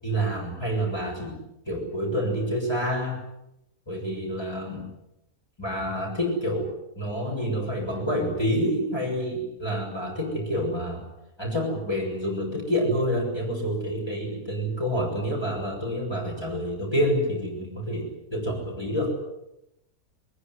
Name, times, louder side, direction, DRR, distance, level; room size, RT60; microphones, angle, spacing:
voice 1, 0.0-3.2 3.9-4.9 5.6-6.7 7.0-11.0 11.4-19.1, equal, 15° left, -2 dB, 7.6 m, -28 dB
22.5 x 22.5 x 9.7 m, 0.85 s
omnidirectional pair, 1.6 m